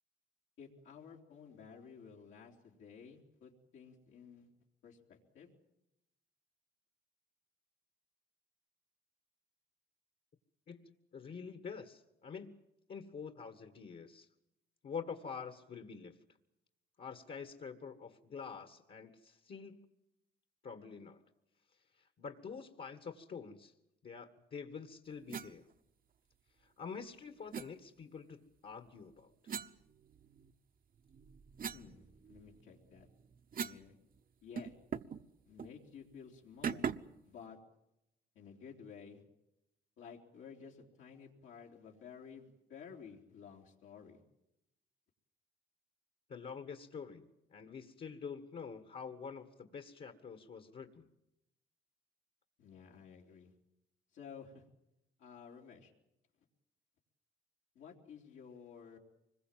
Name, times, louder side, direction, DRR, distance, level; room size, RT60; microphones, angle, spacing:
voice 1, 0.6-4.5 4.8-5.5 31.7-33.1 33.6-33.9 34.4-34.8 35.5-36.9 37.2-37.6 38.4-39.2 40.0-44.2 52.6-53.5 54.1-54.7 55.2-55.9 57.8-59.0, left 6 dB, 80° left, -2 dB, 3.6 m, -53 dB
voice 2, 10.7-12.6 12.9-14.3 14.8-16.2 17.0-19.8 20.6-21.2 22.0-23.7 24.0-25.7 26.6-29.3 46.3-51.1, left 6 dB, 50° left, 7 dB, 1.8 m, -47 dB
sound 1, 25.3-25.5 27.5-27.7 29.5-30.5 31.0-33.9 34.2-34.3 34.6-35.2 35.6-35.8 36.6-37.2, right 7 dB, 45° right, 1.0 m, -41 dB
25.0 x 21.5 x 7.6 m, 0.86 s
cardioid pair, 90°, 20 cm